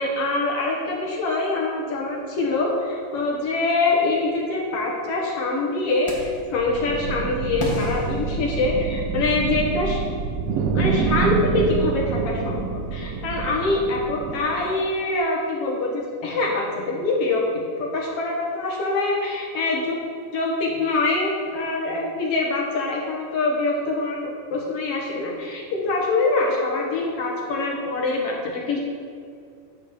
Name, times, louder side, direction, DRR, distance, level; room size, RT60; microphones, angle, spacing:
voice 1, 0.0-10.0 10.5-17.4 17.8-20.0 20.3-28.8, left 3 dB, 55° left, -2 dB, 2.1 m, -24 dB
sound 1, 6.0-6.5 7.6-9.1, equal, 25° left, 0.7 m, -32 dB
sound 2, 6.3-14.7, right 6 dB, 90° right, 1.4 m, -27 dB
9.8 x 8.7 x 4.8 m, 2.3 s
omnidirectional pair, 3.8 m